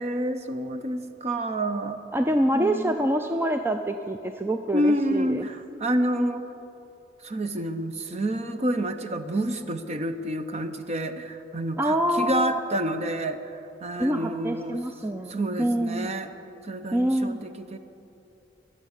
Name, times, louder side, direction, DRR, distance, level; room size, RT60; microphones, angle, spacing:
voice 1, 0.0-2.0 2.5-3.0 4.7-6.5 7.2-14.8 15.3-16.3 16.6-17.8, right 1 dB, 35° right, 9 dB, 0.8 m, -28 dB
voice 2, 2.1-5.5 11.8-12.6 14.0-16.1 16.9-17.4, right 1 dB, 10° right, 6 dB, 0.4 m, -26 dB
21.5 x 7.5 x 8.2 m, 2.8 s
head